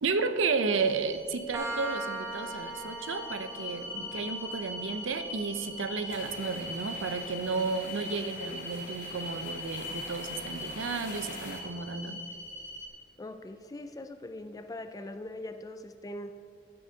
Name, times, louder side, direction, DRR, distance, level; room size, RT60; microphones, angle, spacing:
voice 1, 0.0-12.2, right 4 dB, 80° right, 10 dB, 0.6 m, -32 dB
sound 1, 0.7-12.9, left 1 dB, 65° left, 2.7 m, -41 dB
sound 2, 1.5-9.0, right 2 dB, 15° right, 0.8 m, -42 dB
sound 3, 6.1-11.6, left 3 dB, 40° left, 1.2 m, -45 dB
voice 2, 13.2-16.3, left 1 dB, 20° left, 9 dB, 0.3 m, -41 dB
14.5 x 8.6 x 2.8 m, 2.3 s
head